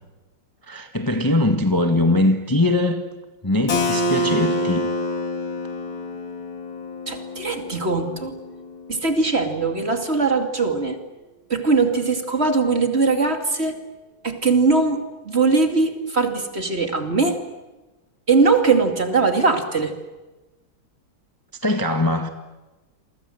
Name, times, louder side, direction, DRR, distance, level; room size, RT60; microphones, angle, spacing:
voice 1, 0.7-3.0 3.4-4.9 21.6-22.3, left 1 dB, 10° left, 1.4 m, -21 dB
Keyboard (musical), 3.7-9.2, left 1 dB, 85° left, 3.3 m, -27 dB
voice 2, 7.1-8.3 8.9-11.0 11.5-13.8 14.2-17.4 18.3-19.9, right 4 dB, 30° right, 2.7 m, -20 dB
29.0 x 23.5 x 7.8 m
omnidirectional pair, 2.1 m